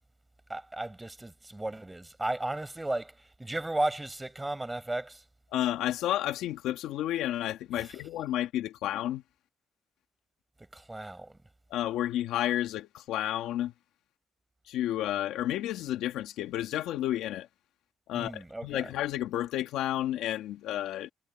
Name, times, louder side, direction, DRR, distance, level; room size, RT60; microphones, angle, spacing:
voice 1, 0.5-3.1 3.4-5.2 7.8-8.0 10.7-11.3 18.1-18.9, right 2 dB, 15° right, 6.1 m, -34 dB
voice 2, 5.5-9.2 11.7-13.7 14.7-17.5 18.1-21.1, left 13 dB, 90° left, 2.1 m, -31 dB
cardioid pair, 90°, 0 cm